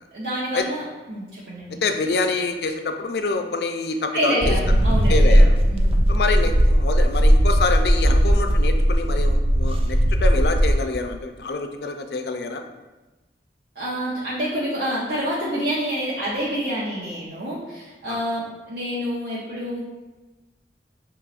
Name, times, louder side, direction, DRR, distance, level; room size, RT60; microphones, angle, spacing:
voice 1, 0.1-1.8 4.1-6.0 13.8-19.8, equal, 60° right, -7 dB, 0.8 m, -27 dB
voice 2, 1.8-4.5 5.1-5.6 6.1-12.6 18.1-18.2, left 3 dB, 65° left, 6 dB, 0.4 m, -26 dB
sound 1, 4.4-10.8, equal, 30° right, 0.3 m, -17 dB
6.1 x 2.9 x 2.5 m, 1.1 s
head